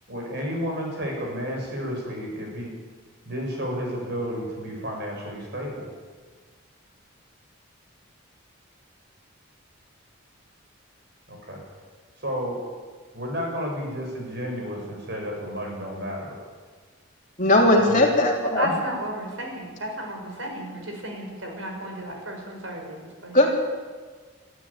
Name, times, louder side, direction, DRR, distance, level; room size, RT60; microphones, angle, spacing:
voice 1, 0.1-2.7 3.3-5.9 11.3-11.6 12.2-12.6 13.1-16.4 17.6-18.0, equal, 50° right, 0 dB, 7.4 m, -31 dB
voice 2, 17.4-18.7 23.3-23.5, left 1 dB, 35° left, 0 dB, 3.4 m, -18 dB
voice 3, 18.4-23.4, right 1 dB, 70° right, 2 dB, 6.0 m, -33 dB
22.0 x 14.0 x 9.0 m, 1.4 s
head